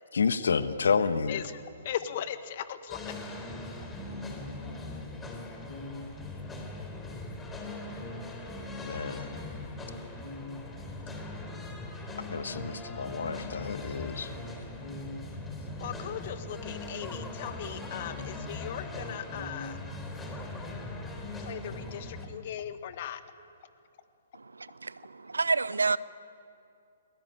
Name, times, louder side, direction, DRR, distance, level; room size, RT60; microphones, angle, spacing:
voice 1, 0.1-1.4 8.8-9.3 12.3-14.3, left 5 dB, 70° left, 1.4 m, -29 dB
voice 2, 1.3-3.1 15.8-19.8 21.4-23.2, left 10 dB, 45° left, 1.7 m, -38 dB
sound 1, 2.9-22.3, left 2 dB, 10° left, 3.7 m, -40 dB
voice 3, 24.3-26.0, right 4 dB, 80° right, 0.7 m, -29 dB
28.5 x 21.0 x 9.0 m
figure-of-eight pair, 125°, 0 cm